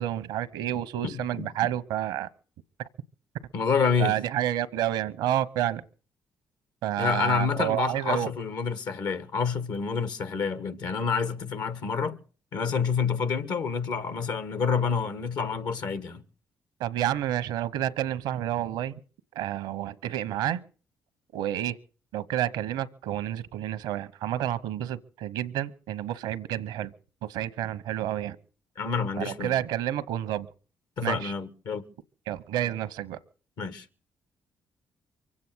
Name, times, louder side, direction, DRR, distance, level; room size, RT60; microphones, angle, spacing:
voice 1, 0.0-2.3 4.0-5.8 6.8-8.3 16.8-19.0 19.3-20.6 21.3-21.8 22.1-26.9 27.2-28.4 29.2-30.5 31.0-31.3 32.3-33.2, right 12 dB, 85° right, 0.9 m, -29 dB
voice 2, 1.0-1.4 3.5-4.2 7.0-12.2 12.5-16.2 28.8-29.6 31.0-31.8 33.6-33.9, left 5 dB, 70° left, 1.5 m, -28 dB
24.0 x 8.6 x 6.2 m
supercardioid pair, 55°, 7 cm